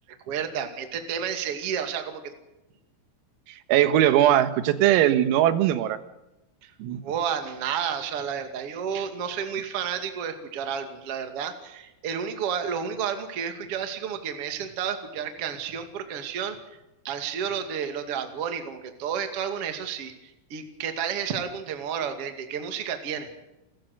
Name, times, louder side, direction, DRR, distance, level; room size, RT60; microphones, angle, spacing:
voice 1, 0.3-2.3 6.6-6.7 7.0-16.6 17.0-23.3, right 7 dB, 40° right, 7 dB, 2.2 m, -31 dB
voice 2, 3.5-6.0 6.8-7.0, right 12 dB, 85° right, 12 dB, 4.0 m, -20 dB
29.5 x 15.0 x 6.6 m, 0.95 s
omnidirectional pair, 5.9 m